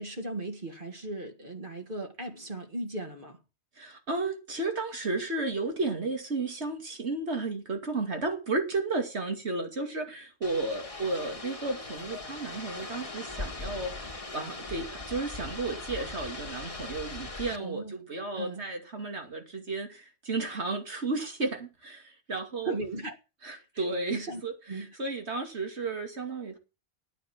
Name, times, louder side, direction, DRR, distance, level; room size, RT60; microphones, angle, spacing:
voice 1, 0.0-3.4 17.6-17.9 18.4-18.7 22.6-23.2 23.7-23.8 24.1-24.4 24.7-24.9, right 2 dB, 50° right, 2.2 m, -37 dB
voice 2, 3.8-14.1 14.3-22.7 23.4-26.6, right 3 dB, 80° right, 2.9 m, -33 dB
sound 1, 10.4-17.6, left 2 dB, 30° left, 1.7 m, -40 dB
12.5 x 9.2 x 6.1 m
omnidirectional pair, 1.1 m